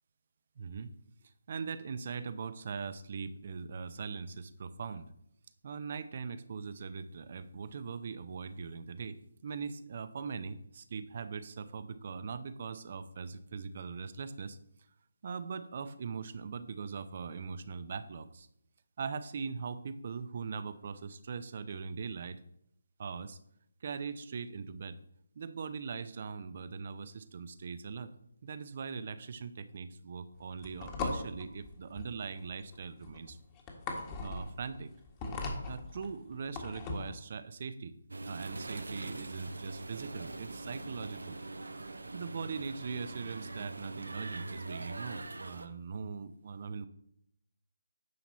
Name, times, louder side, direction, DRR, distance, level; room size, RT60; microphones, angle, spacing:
voice 1, 0.6-0.9 1.5-5.1 5.6-14.6 15.2-18.5 19.0-22.4 23.0-23.4 23.8-25.0 25.3-28.1 28.4-33.4 34.2-34.9 35.7-37.9 38.2-41.4 42.1-46.9, right 5 dB, 45° right, 13 dB, 0.7 m, -41 dB
sound 1, 30.3-37.2, left 3 dB, 20° left, 1.5 m, -39 dB
sound 2, 38.1-45.7, right 2 dB, 80° right, 0.8 m, -42 dB
9.5 x 5.9 x 4.2 m, 0.73 s
figure-of-eight pair, 155°, 0 cm